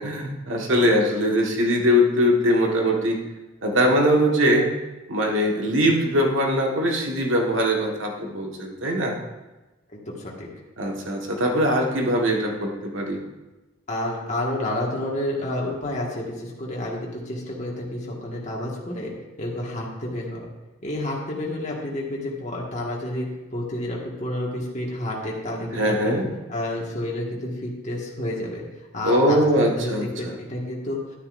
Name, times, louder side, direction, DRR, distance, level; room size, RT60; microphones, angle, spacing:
voice 1, 0.0-3.2 3.6-4.7 5.1-9.2 10.8-13.2 25.7-26.3 29.0-30.0, equal, 80° right, 0 dB, 1.6 m, -21 dB
voice 2, 9.9-10.5 13.9-19.1 19.4-20.4 20.8-26.2 26.5-28.6 28.9-29.4 29.7-31.0, left 1 dB, 40° left, -3 dB, 1.7 m, -30 dB
11.5 x 9.8 x 2.6 m, 1.1 s
head